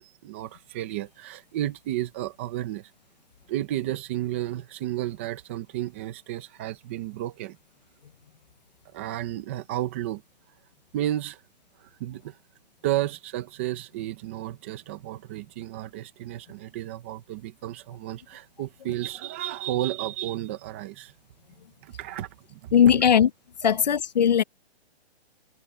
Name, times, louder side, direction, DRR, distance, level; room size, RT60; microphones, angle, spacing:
voice 1, 0.0-2.9 3.5-7.6 8.9-10.2 10.9-11.4 11.8-12.4 12.8-21.1 21.8-23.1 23.6-23.8, right 14 dB, 10° right, 0.7 m, -32 dB
voice 2, 22.7-23.3 23.6-24.4, left 8 dB, 40° left, 0.7 m, -19 dB
hypercardioid pair, 170°, 33 cm